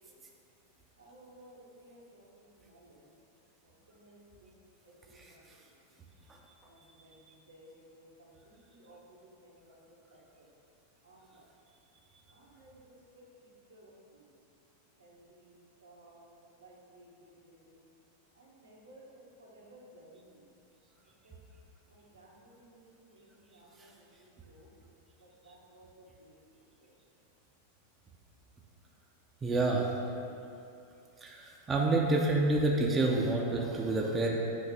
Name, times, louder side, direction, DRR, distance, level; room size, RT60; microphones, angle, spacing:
voice 1, 1.0-2.2 2.7-3.0 4.0-4.5 5.1-5.4 6.7-6.8 7.0-7.1 7.5-8.1 8.5-9.0 9.4-9.7 11.0-11.4 12.3-12.8 13.7-13.9 15.0-16.3 16.6-17.1 17.4-17.8 18.4-19.1 19.4-20.2 21.2-21.3 21.9-22.8 23.1-23.9 24.2-24.7 25.4-25.9 26.2-26.3, right 1 dB, 75° right, -5 dB, 1.3 m, -57 dB
voice 2, 29.4-29.8 31.2-31.3 31.7-34.3, right 2 dB, 20° right, -1 dB, 0.6 m, -27 dB
8.2 x 3.1 x 5.0 m, 2.6 s
figure-of-eight pair, 90°, 0 cm